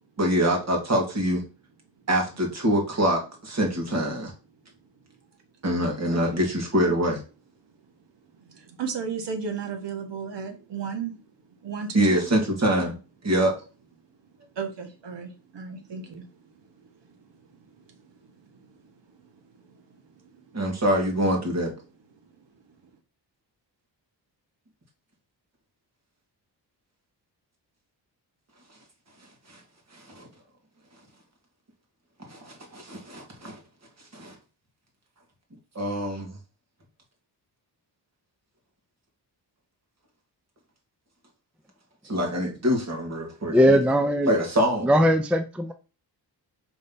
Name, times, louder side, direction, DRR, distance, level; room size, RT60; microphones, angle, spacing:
voice 1, 0.2-1.4 2.1-4.3 5.6-7.2 11.9-13.0 13.2-13.5 20.5-21.7 29.5-29.6 29.9-30.3 32.3-33.6 34.1-34.4 35.8-36.4 42.0-43.8 44.3-44.9, equal, 35° right, 2.1 m, -25 dB
voice 2, 8.4-11.2 11.6-12.3 14.5-18.9 19.5-20.6 22.4-22.5, right 6 dB, 75° right, 1.4 m, -36 dB
voice 3, 43.5-44.3 44.8-45.7, equal, 5° right, 0.4 m, -19 dB
5.3 x 3.4 x 5.5 m
wide cardioid pair, 165°, 43 cm